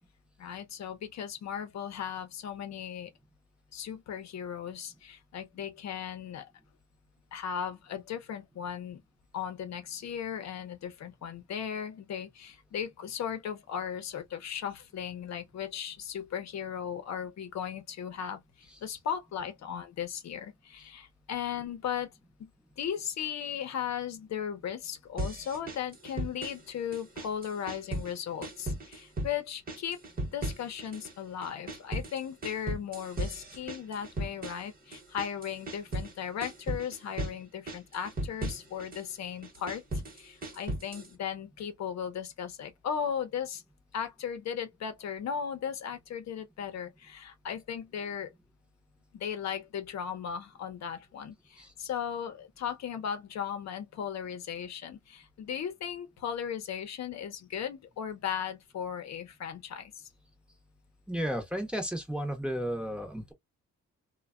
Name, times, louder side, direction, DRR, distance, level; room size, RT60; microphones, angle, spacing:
voice 1, 0.4-3.1 3.7-6.4 7.3-9.0 9.3-22.1 22.4-22.5 22.8-30.0 30.3-39.8 40.1-43.6 43.9-48.3 49.1-60.1, left 8 dB, 65° left, 0.7 m, -37 dB
sound 1, 25.2-26.7 26.9-28.2 28.4-29.4 29.7-31.1 31.4-36.1 36.4-37.4 37.7-39.0 39.4-41.1, right 1 dB, 30° right, 1.0 m, -37 dB
voice 2, 61.1-63.3, equal, 5° right, 0.7 m, -33 dB
3.2 x 2.2 x 2.3 m
cardioid pair, 135°, 30 cm